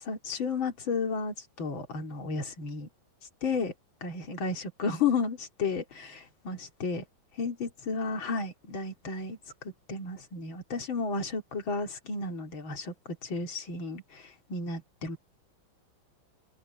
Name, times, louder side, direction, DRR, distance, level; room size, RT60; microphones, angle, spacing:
voice 1, 0.0-2.9 3.4-3.7 4.0-7.0 7.4-12.9 13.2-15.2, left 4 dB, 80° left, 3.2 m, -33 dB
omnidirectional pair, 2.2 m